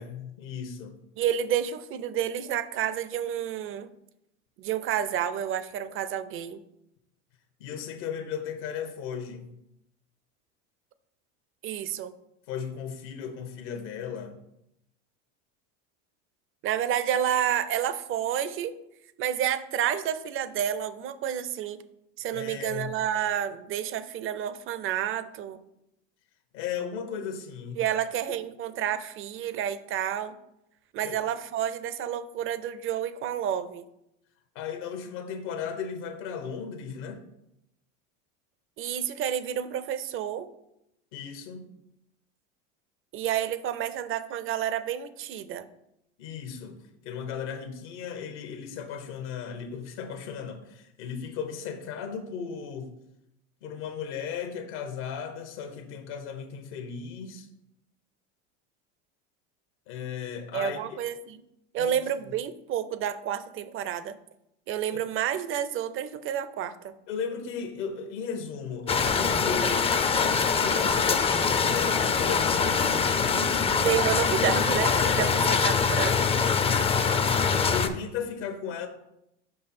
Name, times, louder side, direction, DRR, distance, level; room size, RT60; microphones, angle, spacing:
voice 1, 0.0-1.0 7.6-9.5 12.5-14.4 22.3-22.9 26.5-28.0 31.0-31.2 34.5-37.2 41.1-41.7 46.2-52.9 53.6-57.5 59.9-61.0 61.8-62.0 64.9-65.0 67.1-69.9 70.6-73.9 75.0-75.3 76.6-76.9 77.7-78.9, left 7 dB, 75° left, 5 dB, 1.0 m, -36 dB
voice 2, 1.2-3.9 4.6-6.6 11.6-12.1 16.6-18.7 19.2-21.8 22.2-25.6 27.8-30.3 30.9-33.8 38.8-40.5 43.1-45.7 60.5-61.4 61.7-64.2 64.7-66.9 73.8-76.4, right 10 dB, 35° right, 13 dB, 0.5 m, -30 dB
sound 1, 68.9-77.9, left 5 dB, 15° left, 0.4 m, -24 dB
5.4 x 5.3 x 4.3 m, 0.83 s
supercardioid pair, 105°, 35 cm